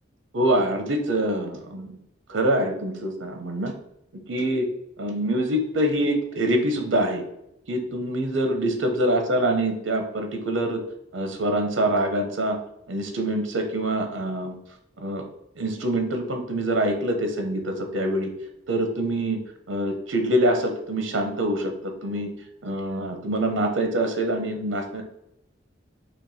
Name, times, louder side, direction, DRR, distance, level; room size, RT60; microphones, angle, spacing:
voice 1, 0.3-2.0 2.3-3.7 4.3-4.7 5.0-7.2 7.7-10.8 11.1-12.6 12.9-14.5 15.0-15.2 15.6-18.3 18.7-19.4 19.7-22.3 22.6-25.0, right 1 dB, 75° right, 5 dB, 0.7 m, -25 dB
4.5 x 2.9 x 4.1 m, 0.81 s
head